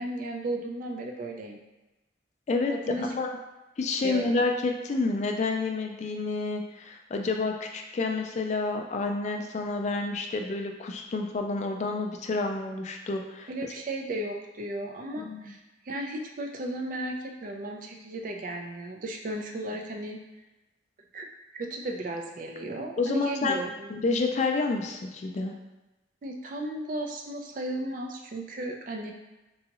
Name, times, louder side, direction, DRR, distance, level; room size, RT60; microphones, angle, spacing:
voice 1, 0.0-1.6 2.7-3.1 4.0-4.5 13.5-15.6 15.8-20.2 21.1-21.3 21.5-23.9 26.2-29.1, right 1 dB, 50° right, 2 dB, 0.4 m, -35 dB
voice 2, 3.0-3.4 3.8-13.5 15.2-15.5 23.0-23.6 23.9-25.5, left 3 dB, 40° left, 3 dB, 0.3 m, -29 dB
3.8 x 2.3 x 2.8 m, 1.1 s
head